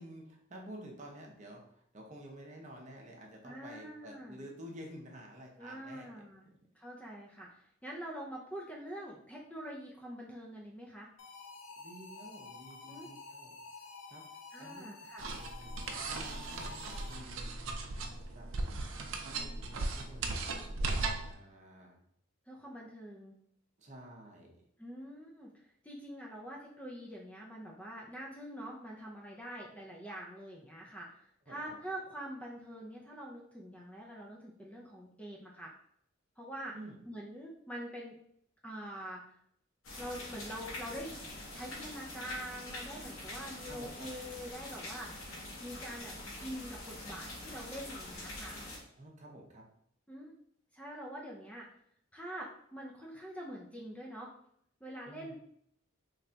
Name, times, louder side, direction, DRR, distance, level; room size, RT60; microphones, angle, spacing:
voice 1, 0.0-6.6 11.8-13.6 14.1-15.5 16.1-17.5 18.3-18.5 19.2-20.9 21.3-22.0 23.8-24.6 31.5-31.8 36.7-37.0 43.7-44.1 49.0-49.6 55.1-55.3, right 1 dB, 35° right, 0 dB, 0.7 m, -51 dB
voice 2, 3.4-4.5 5.6-6.5 6.7-11.1 12.9-13.1 14.5-15.3 22.5-23.3 24.8-35.7 36.4-36.8 37.1-38.1 38.6-39.4 40.0-41.2 41.5-45.3 45.6-48.6 50.1-50.3 50.7-51.7 52.1-54.3 54.8-55.3, equal, 5° left, -3 dB, 0.4 m, -45 dB
sound 1, 11.2-17.5, left 4 dB, 70° left, 0.5 m, -50 dB
sound 2, 15.2-21.3, right 3 dB, 75° right, 0.5 m, -37 dB
sound 3, 39.8-48.8, left 1 dB, 90° left, 1.0 m, -45 dB
3.2 x 2.3 x 3.8 m, 0.69 s
head